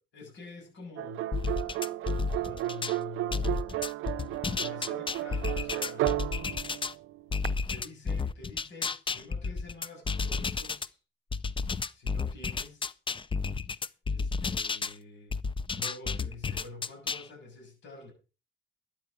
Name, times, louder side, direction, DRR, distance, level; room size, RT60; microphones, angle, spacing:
voice 1, 0.1-1.3 2.3-3.7 4.2-6.1 7.7-11.0 11.9-13.0 13.8-15.3 15.7-18.1, left 3 dB, 65° left, 1 dB, 7.2 m, -47 dB
sound 1, 1.0-7.5, right 16 dB, 90° right, 0.6 m, -33 dB
sound 2, 1.3-3.0 3.3-6.9 7.3-10.9 11.3-14.9 15.3-17.2, left 4 dB, 25° left, 0.6 m, -32 dB
13.0 x 9.1 x 5.0 m, 0.34 s
cardioid pair, 90°, 20 cm